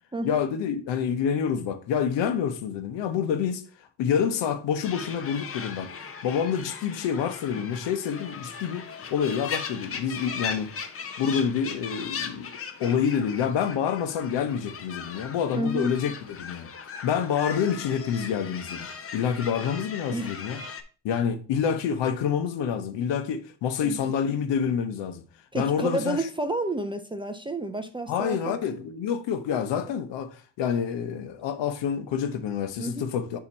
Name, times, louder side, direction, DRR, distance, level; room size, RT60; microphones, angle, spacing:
voice 1, 0.2-3.6 4.0-5.9 6.2-10.7 11.2-16.7 17.0-18.9 19.1-20.6 21.0-25.2 25.5-26.2 28.1-33.4, left 7 dB, 75° left, 0.9 m, -27 dB
sound 1, 4.8-20.8, left 6 dB, 30° left, 0.7 m, -38 dB
voice 2, 15.5-15.9 20.1-20.3 23.8-24.1 25.5-28.6 32.8-33.1, right 2 dB, 15° right, 0.4 m, -30 dB
7.0 x 2.9 x 5.3 m
cardioid pair, 115°, 43 cm